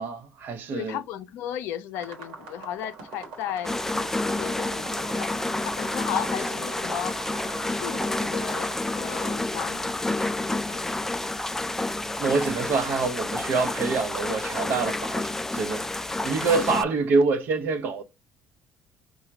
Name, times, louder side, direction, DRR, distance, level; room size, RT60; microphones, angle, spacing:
voice 1, 0.0-1.0 12.2-15.9 16.2-18.0, right 4 dB, 60° right, 0.7 m, -26 dB
voice 2, 0.7-5.3 5.6-7.1 7.7-11.2 16.4-16.9, left 11 dB, 75° left, 0.5 m, -36 dB
sound 1, 1.9-8.7, right 4 dB, 90° right, 1.3 m, -41 dB
sound 2, 3.6-16.8, left 2 dB, 10° left, 0.4 m, -29 dB
4.7 x 2.3 x 3.2 m
supercardioid pair, 75°, 4 cm